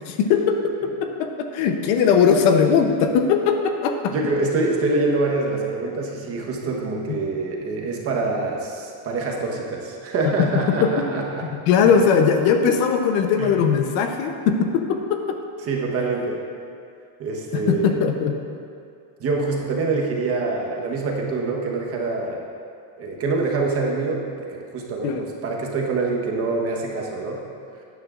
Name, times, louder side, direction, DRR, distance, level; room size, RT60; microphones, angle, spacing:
voice 1, 0.1-4.1 7.1-7.2 10.4-10.5 10.8-11.0 11.5-15.4 17.5-18.3 25.0-25.3, left 6 dB, 60° left, 5 dB, 0.9 m, -20 dB
voice 2, 4.1-11.4 11.8-11.9 13.4-13.5 15.6-16.4 17.2-18.0 19.2-22.4 23.0-27.4, right 3 dB, 30° right, -1 dB, 1.2 m, -25 dB
12.5 x 9.5 x 2.5 m, 2.4 s
cardioid pair, 155°, 46 cm